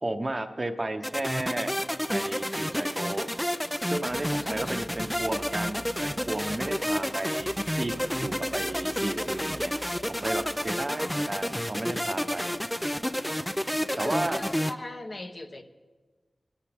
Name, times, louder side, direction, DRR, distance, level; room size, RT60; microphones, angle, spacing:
voice 1, 0.0-1.7 2.1-3.3 3.9-9.7 10.1-12.5 14.0-14.4, right 1 dB, 35° right, 7 dB, 0.9 m, -33 dB
sound 1, 1.0-14.7, equal, 5° left, 0.4 m, -30 dB
sound 2, 4.0-10.7, equal, 80° left, 5.4 m, -50 dB
voice 2, 4.4-4.9 11.0-11.4 13.9-15.6, left 2 dB, 45° left, 6 dB, 1.0 m, -39 dB
19.0 x 11.5 x 3.5 m, 1.4 s
wide cardioid pair, 65°, 0 cm